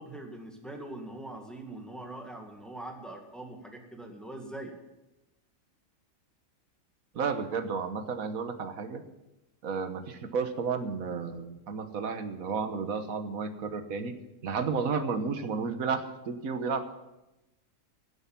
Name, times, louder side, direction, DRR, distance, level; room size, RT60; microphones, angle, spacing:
voice 1, 0.0-4.7, right 1 dB, ahead, 2 dB, 2.0 m, -42 dB
voice 2, 7.1-9.0 9.6-14.1 14.4-16.9, right 5 dB, 90° right, 8 dB, 1.6 m, -32 dB
16.5 x 8.0 x 7.3 m, 0.97 s
omnidirectional pair, 1.4 m